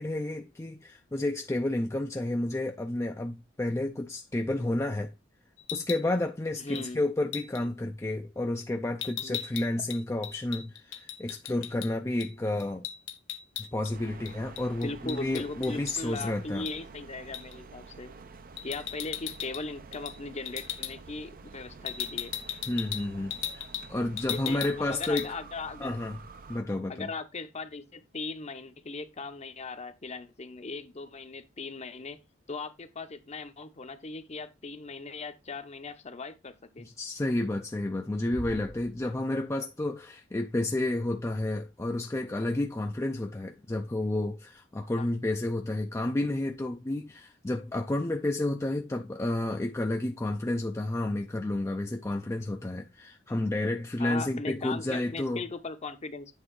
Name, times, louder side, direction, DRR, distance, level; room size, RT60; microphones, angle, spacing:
voice 1, 0.0-5.1 5.7-12.8 13.6-16.7 22.7-25.3 25.8-26.2 26.5-27.1 36.8-55.4, left 1 dB, 15° left, 0.5 m, -31 dB
sound 1, 5.6-6.1 6.8-6.9 7.3-7.6 9.0-11.9 12.2-12.3 12.6-13.9 14.3-16.2 16.7-16.8 17.3-17.6 18.6-19.6 19.9-20.2 20.5-20.9 21.9-23.9 24.2-24.8 25.0-25.3, left 10 dB, 70° left, 0.7 m, -37 dB
voice 2, 6.6-7.0 9.2-9.4 14.8-18.1 18.6-22.3 24.2-26.0 26.9-32.2 32.5-36.9 45.0-45.1 54.0-56.3, left 3 dB, 35° left, 0.8 m, -39 dB
sound 2, 13.9-26.6, right 4 dB, 45° right, 0.6 m, -49 dB
Bass drum, 38.3-39.8, right 2 dB, 90° right, 1.4 m, -44 dB
8.4 x 3.5 x 4.7 m
head